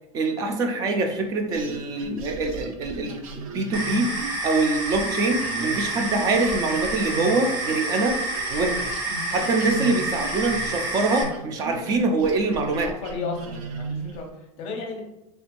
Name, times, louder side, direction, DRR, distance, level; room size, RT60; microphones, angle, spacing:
voice 1, 0.1-4.1 4.4-8.2 8.5-8.9 9.3-12.9, right 3 dB, 20° right, 4 dB, 0.3 m, -24 dB
sound 1, 1.5-7.8 8.0-14.3, right 3 dB, 80° right, 0.6 m, -36 dB
sound 2, 3.7-11.2, right 2 dB, 50° right, 1.0 m, -29 dB
voice 2, 12.7-15.0, left 4 dB, 35° left, 1 dB, 0.7 m, -35 dB
3.2 x 3.0 x 2.5 m, 0.94 s
supercardioid pair, 160°, 18 cm